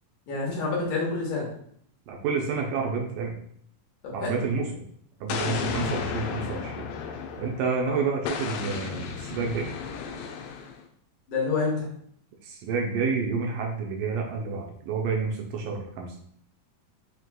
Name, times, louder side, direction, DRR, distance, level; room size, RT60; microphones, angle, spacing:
voice 1, 0.3-1.5 4.0-4.4 7.9-8.0 11.3-11.9, left 3 dB, 75° left, -3 dB, 2.2 m, -28 dB
voice 2, 2.1-3.4 4.1-4.7 5.2-6.9 7.4-9.7 12.4-16.2, right 5 dB, 80° right, 0 dB, 2.0 m, -29 dB
Explosion, 5.3-7.7 8.3-10.8, left 6 dB, 90° left, 2.3 m, -33 dB
6.0 x 2.8 x 2.2 m, 0.65 s
omnidirectional pair, 4.0 m